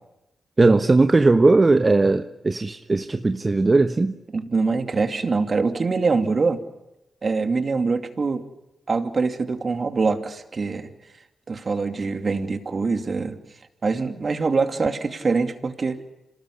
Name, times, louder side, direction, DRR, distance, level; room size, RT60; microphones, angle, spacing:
voice 1, 0.6-4.1, right 3 dB, 35° right, 1.1 m, -18 dB
voice 2, 4.3-6.6 7.2-8.4 8.9-10.9 11.5-13.4 13.8-16.0, right 4 dB, 50° right, 2.5 m, -24 dB
27.0 x 19.5 x 10.0 m
supercardioid pair, 45°, 0 cm